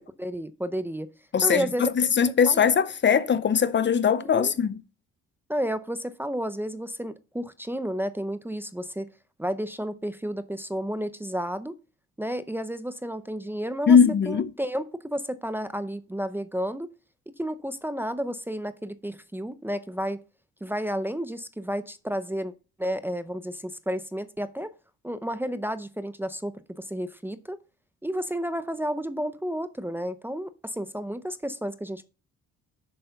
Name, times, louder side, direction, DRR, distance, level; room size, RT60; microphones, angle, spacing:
voice 1, 0.2-1.1 1.4-1.9 2.5-2.7 4.2-4.5 5.5-9.1 9.4-11.7 12.2-14.0 14.3-16.9 17.4-20.2 20.6-22.5 22.8-24.7 25.0-27.6 28.0-32.0, equal, 5° right, 0.6 m, -31 dB
voice 2, 1.3-4.7 13.9-14.5, left 7 dB, 40° left, 0.7 m, -20 dB
7.7 x 6.6 x 5.7 m
cardioid pair, 90°, 30 cm